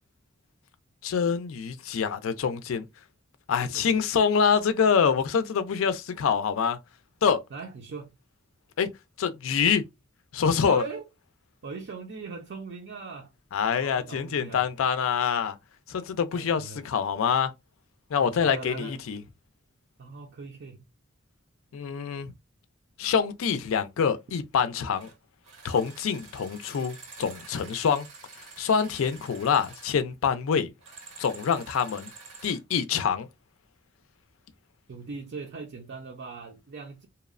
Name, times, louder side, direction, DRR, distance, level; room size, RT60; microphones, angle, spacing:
voice 1, 1.0-2.9 3.5-6.8 7.2-7.4 8.8-8.9 9.2-9.8 10.3-10.8 13.5-15.6 15.9-17.5 18.1-19.2 21.7-22.3 23.0-25.1 25.6-28.1 28.6-30.7 31.2-32.1 32.4-33.3, left 6 dB, 70° left, 0.4 m, -25 dB
voice 2, 3.6-4.0 7.5-8.1 10.6-11.1 11.6-13.3 13.8-14.7 16.3-16.8 18.2-19.0 20.0-20.8 34.9-37.1, right 4 dB, 60° right, 0.4 m, -40 dB
sound 1, 24.9-25.2 25.4-30.0 30.8-32.6, right 4 dB, 90° right, 0.9 m, -48 dB
2.8 x 2.0 x 2.4 m
head